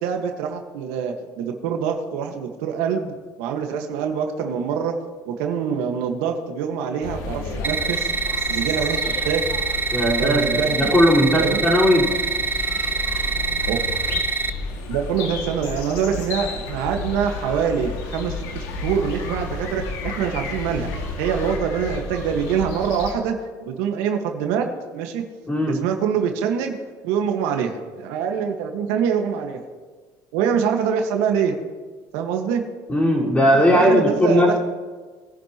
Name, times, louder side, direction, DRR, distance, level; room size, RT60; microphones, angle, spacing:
voice 1, 0.0-4.9 5.2-8.1 8.5-9.4 10.2-11.0 11.3-11.7 13.7-13.8 14.9-23.3 23.6-24.7 24.9-25.2 25.7-26.8 27.0-29.6 30.3-31.5 32.1-32.6 33.7-34.6, right 7 dB, 85° right, 3 dB, 1.6 m, -24 dB
sound 1, 7.0-23.1, left 3 dB, 85° left, 2.2 m, -32 dB
sound 2, 7.6-14.5, right 4 dB, 20° right, 0.6 m, -25 dB
voice 2, 9.9-12.1 25.5-25.8 32.9-34.6, equal, 15° left, -4 dB, 4.5 m, -18 dB
21.5 x 11.0 x 3.0 m, 1.4 s
cardioid pair, 125°, 9 cm